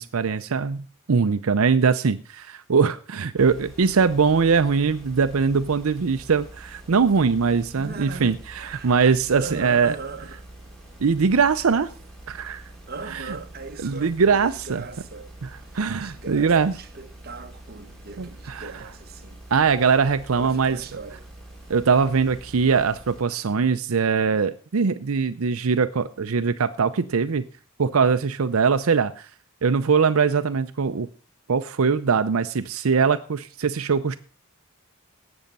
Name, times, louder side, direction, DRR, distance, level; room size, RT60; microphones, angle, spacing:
voice 1, 0.0-10.0 11.0-11.9 12.3-12.6 13.1-13.3 13.8-14.8 15.4-16.7 18.2-18.8 19.5-20.8 21.7-27.4 27.8-29.3 29.6-31.1 31.5-34.2, right 5 dB, 80° right, 0.6 m, -22 dB
sound 1, 3.4-23.2, right 1 dB, 5° left, 3.8 m, -45 dB
voice 2, 7.5-9.0 9.3-10.5 12.9-15.3 15.6-19.4 20.3-21.3, right 4 dB, 45° right, 1.1 m, -39 dB
17.5 x 7.1 x 5.3 m
head